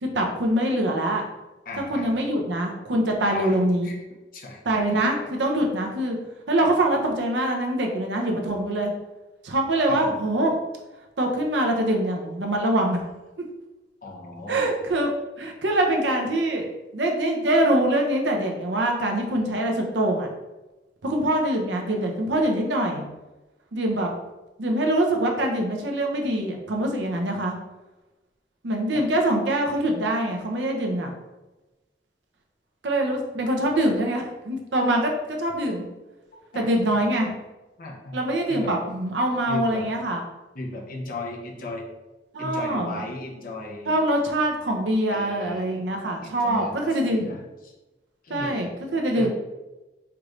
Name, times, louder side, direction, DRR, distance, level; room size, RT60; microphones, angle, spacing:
voice 1, 0.0-1.2 1.9-3.9 4.7-6.2 6.5-8.9 9.4-10.5 11.2-13.0 14.5-16.7 16.9-20.3 21.0-23.0 23.7-24.1 24.6-27.5 28.6-31.1 32.8-35.8 36.5-37.3 38.1-40.2 42.3-43.0 43.9-47.4 48.3-49.3, right 1 dB, 85° right, 2 dB, 0.7 m, -24 dB
voice 2, 1.6-2.1 3.3-4.0 4.3-4.6 5.2-5.3 6.6-6.7 9.9-10.2 14.0-14.7 36.5-37.0 37.8-38.2 38.5-38.7 39.5-39.8 40.5-41.9 42.4-44.0 45.1-45.9 46.2-47.7 48.2-48.7 49.1-49.3, left 2 dB, 55° left, -1 dB, 0.8 m, -36 dB
4.6 x 3.1 x 2.5 m, 1.1 s
head